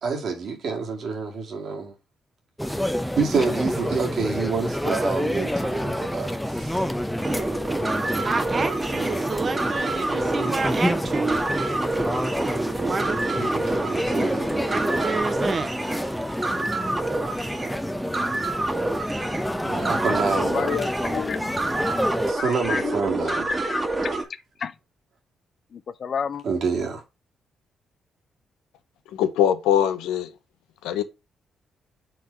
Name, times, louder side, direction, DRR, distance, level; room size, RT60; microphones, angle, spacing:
voice 1, 0.0-1.9 2.8-2.9 3.2-6.8 13.3-15.4 19.6-20.7 22.3-23.5 24.0-24.1 26.4-27.0, right 5 dB, 65° right, 2.0 m, -28 dB
sound 1, 2.6-22.3, equal, 5° left, 0.7 m, -28 dB
sound 2, 7.2-24.2, right 2 dB, 25° right, 1.5 m, -28 dB
voice 2, 8.2-11.4 12.8-13.2 14.7-15.7, right 4 dB, 45° right, 1.0 m, -29 dB
voice 3, 20.5-21.5 22.4-24.1 24.6-24.7 25.7-26.4, left 6 dB, 55° left, 0.5 m, -30 dB
voice 4, 29.1-30.3 30.8-31.0, left 10 dB, 90° left, 0.8 m, -22 dB
4.7 x 3.9 x 5.5 m
supercardioid pair, 60°, 0 cm